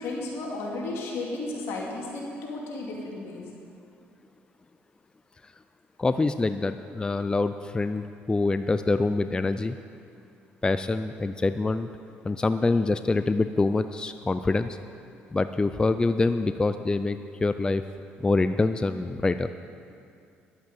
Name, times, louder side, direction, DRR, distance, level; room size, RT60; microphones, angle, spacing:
voice 1, 0.0-3.4, left 2 dB, 75° left, -2 dB, 2.8 m, -33 dB
voice 2, 6.0-9.8 10.6-11.9 12.2-14.8 15.3-17.8 18.2-19.5, left 3 dB, 20° left, 11 dB, 0.4 m, -25 dB
11.5 x 8.0 x 7.9 m, 2.5 s
supercardioid pair, 75°, 4 cm